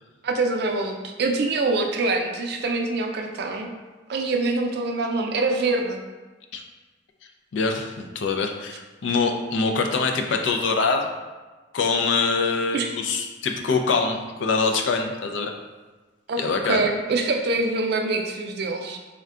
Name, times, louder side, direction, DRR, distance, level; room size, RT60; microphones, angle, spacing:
voice 1, 0.2-3.7 4.1-6.0 12.7-12.9 16.3-19.0, right 3 dB, 60° right, 3 dB, 0.4 m, -25 dB
voice 2, 7.5-11.1 11.7-15.5 16.4-16.8, left 4 dB, 85° left, 4 dB, 0.4 m, -24 dB
3.6 x 2.2 x 3.6 m, 1.3 s
head